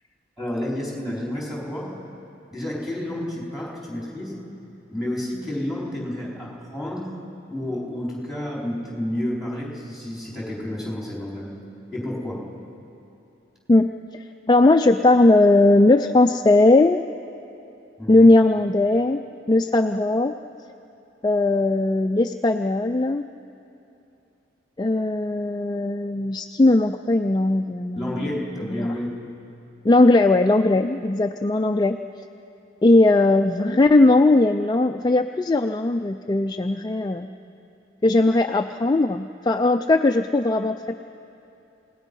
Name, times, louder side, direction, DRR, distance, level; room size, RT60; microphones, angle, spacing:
voice 1, 0.4-1.9 2.5-4.4 4.9-7.1 7.5-11.5 11.9-12.5 18.0-18.3 28.0-29.1, left 1 dB, ahead, -4 dB, 4.3 m, -30 dB
voice 2, 13.7-17.0 18.1-19.2 19.5-20.3 21.2-23.3 24.8-29.0 29.8-32.0 32.8-37.3 38.0-41.0, left 2 dB, 20° left, 6 dB, 0.4 m, -18 dB
28.5 x 18.0 x 5.5 m, 2.8 s
head